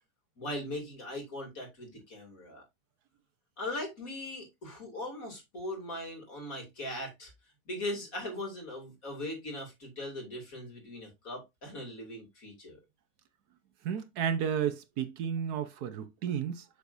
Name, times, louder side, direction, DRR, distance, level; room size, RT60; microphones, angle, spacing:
voice 1, 0.4-2.6 3.6-7.3 7.6-12.8, left 1 dB, 55° left, 3.5 m, -39 dB
voice 2, 13.8-16.6, right 8 dB, 70° right, 1.4 m, -32 dB
7.0 x 6.5 x 2.6 m
omnidirectional pair, 1.7 m